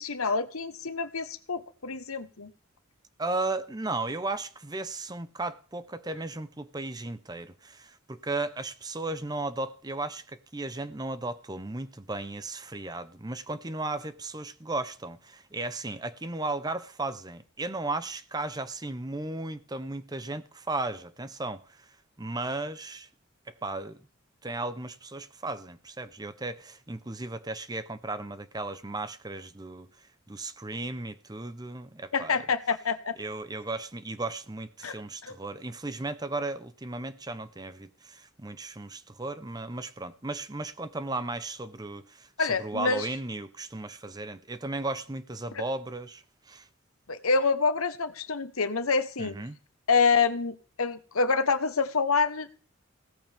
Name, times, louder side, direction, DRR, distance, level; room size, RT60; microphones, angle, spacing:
voice 1, 0.0-2.5 32.1-33.2 34.8-34.9 35.2-35.4 42.4-43.1 47.1-49.4 49.9-52.5, left 4 dB, 85° left, 1.2 m, -27 dB
voice 2, 3.2-21.9 22.2-23.1 23.6-24.0 24.4-29.9 30.3-32.4 33.2-46.7 49.2-49.6, right 2 dB, 20° right, 0.8 m, -35 dB
17.0 x 14.0 x 3.6 m
head